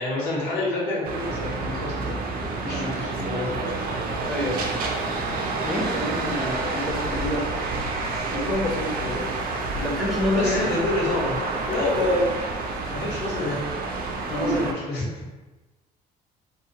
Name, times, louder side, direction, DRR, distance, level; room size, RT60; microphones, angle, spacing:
voice 1, 0.0-2.2 2.6-3.6 10.3-12.3 12.9-13.6 14.2-15.1, left 2 dB, 75° left, -5 dB, 0.9 m, -27 dB
sound 1, 1.0-14.7, right 3 dB, 60° right, 0.4 m, -29 dB
voice 2, 2.7-3.0 4.3-4.9 5.6-7.5 8.3-9.3 9.8-10.7 14.3-14.6, left 1 dB, ahead, -3 dB, 0.5 m, -28 dB
2.2 x 2.2 x 2.8 m, 1.2 s
cardioid pair, 110°, 17 cm